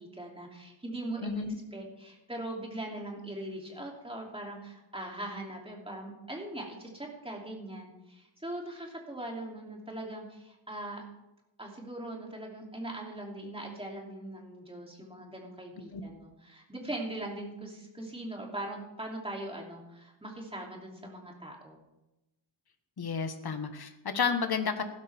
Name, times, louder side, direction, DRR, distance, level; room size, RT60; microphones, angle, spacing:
voice 1, 0.0-1.4 1.7-11.0 11.6-21.8, right 1 dB, 10° right, -1 dB, 2.9 m, -41 dB
voice 2, 1.2-1.6 15.9-16.0 23.0-24.8, left 6 dB, 50° left, 8 dB, 1.4 m, -31 dB
15.5 x 13.0 x 3.5 m, 0.96 s
wide cardioid pair, 115°, 47 cm